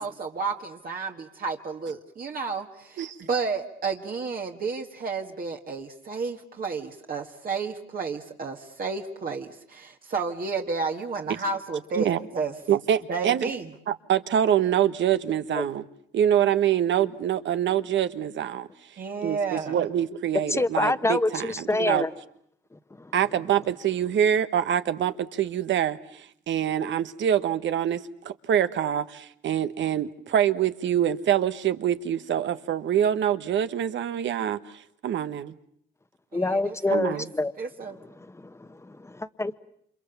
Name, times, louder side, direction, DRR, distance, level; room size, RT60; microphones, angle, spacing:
voice 1, 0.0-12.5 13.1-13.7 19.0-19.8 36.3-37.2 37.6-38.0, right 4 dB, 45° right, 1.8 m, -32 dB
voice 2, 12.7-13.4 13.9-15.8 16.1-18.7 19.2-22.0 23.1-34.6 35.0-35.5 36.9-37.2, right 10 dB, 70° right, 1.2 m, -25 dB
voice 3, 20.5-22.1 23.0-23.1 36.3-37.5 38.2-39.5, left 2 dB, 15° left, 1.2 m, -27 dB
28.5 x 26.0 x 7.1 m
cardioid pair, 90°, 20 cm